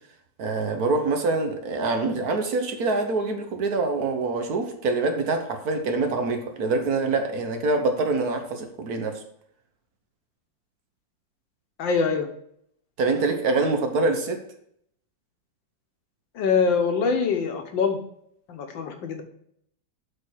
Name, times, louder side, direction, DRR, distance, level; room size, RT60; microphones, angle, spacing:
voice 1, 0.4-9.2 13.0-14.4, right 3 dB, 55° right, 6 dB, 1.4 m, -25 dB
voice 2, 11.8-12.3 16.4-18.0 18.5-19.2, left 5 dB, 75° left, 5 dB, 1.7 m, -24 dB
7.5 x 4.4 x 6.2 m, 0.70 s
omnidirectional pair, 2.1 m